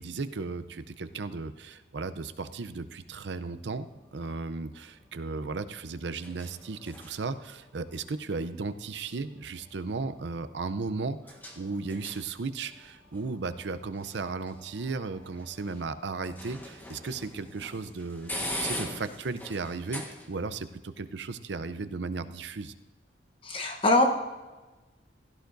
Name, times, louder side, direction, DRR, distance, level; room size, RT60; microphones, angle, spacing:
voice 1, 0.0-11.2 11.6-22.7, right 4 dB, 75° right, 12 dB, 0.6 m, -35 dB
sound 1, 3.1-20.6, left 1 dB, 10° left, 1.3 m, -44 dB
voice 2, 23.4-24.0, left 2 dB, 30° left, 4 dB, 0.9 m, -23 dB
16.0 x 13.0 x 2.6 m, 1.2 s
head